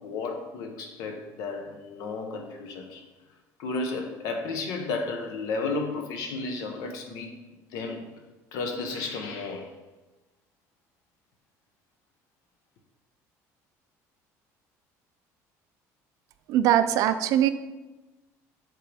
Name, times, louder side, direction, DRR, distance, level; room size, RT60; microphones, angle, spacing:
voice 1, 0.0-3.0 3.6-7.4 7.7-8.1 8.5-9.7, left 3 dB, 70° left, 4 dB, 1.0 m, -33 dB
voice 2, 16.5-17.5, right 11 dB, 60° right, 11 dB, 0.4 m, -21 dB
7.6 x 3.8 x 3.4 m, 1.1 s
cardioid pair, 155°, 6 cm